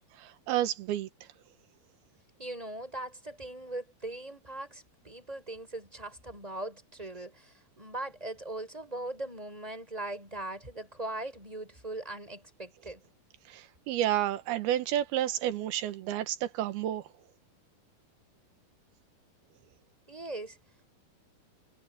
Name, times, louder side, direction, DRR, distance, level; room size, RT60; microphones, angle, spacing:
voice 1, 0.2-1.1 13.5-17.0, right 12 dB, 90° right, 3.1 m, -30 dB
voice 2, 2.4-13.0 20.1-20.6, right 2 dB, 10° right, 6.6 m, -40 dB
omnidirectional pair, 4.4 m